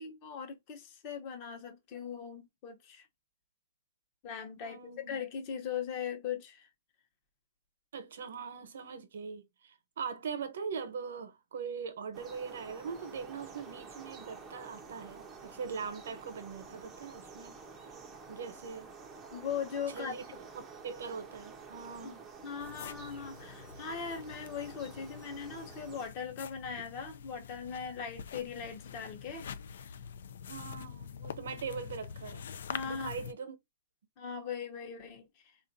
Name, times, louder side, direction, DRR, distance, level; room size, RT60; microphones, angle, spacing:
voice 1, 0.0-3.1 4.2-6.7 19.3-20.1 22.0-22.2 22.4-29.9 32.7-33.1 34.2-35.5, left 7 dB, 35° left, 0.9 m, -40 dB
voice 2, 4.6-5.2 7.9-17.6 18.3-18.9 19.9-20.3 20.5-22.3 30.5-32.5 32.8-33.5, right 6 dB, 80° right, 0.9 m, -41 dB
sound 1, 12.1-26.1, right 5 dB, 15° right, 0.6 m, -50 dB
sound 2, 22.6-33.3, left 7 dB, 75° left, 0.4 m, -46 dB
3.6 x 2.5 x 2.7 m
hypercardioid pair, 165°, 0 cm